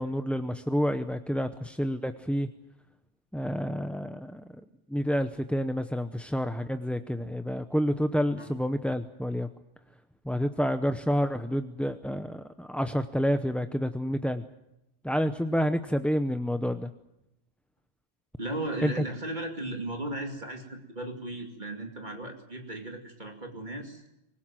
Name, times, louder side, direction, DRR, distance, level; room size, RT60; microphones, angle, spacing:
voice 1, 0.0-2.5 3.3-4.4 4.9-9.5 10.2-14.4 15.0-16.9 18.8-18.9, equal, ahead, 8 dB, 0.6 m, -29 dB
voice 2, 18.4-24.0, right 1 dB, 40° right, 3 dB, 2.7 m, -36 dB
24.5 x 20.5 x 7.5 m, 0.88 s
omnidirectional pair, 1.2 m